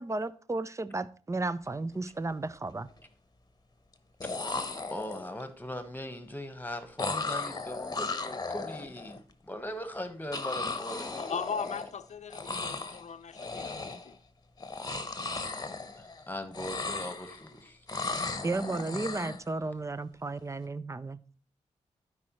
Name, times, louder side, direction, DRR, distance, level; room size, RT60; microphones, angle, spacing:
voice 1, 0.0-2.9 18.4-21.2, right 2 dB, 25° right, 0.5 m, -34 dB
sound 1, 1.8-2.0 2.3-2.9 3.9-4.0 4.2-5.4 7.0-9.2 10.3-12.0 12.3-13.0 13.3-14.1 14.6-16.2 16.5-17.5 17.9-19.4, left 3 dB, 30° left, 1.0 m, -36 dB
voice 2, 4.9-11.3 15.9-17.8, left 1 dB, 15° left, 1.3 m, -40 dB
voice 3, 11.2-14.2, left 6 dB, 65° left, 0.6 m, -38 dB
12.0 x 4.8 x 3.1 m
cardioid pair, 55°, 13 cm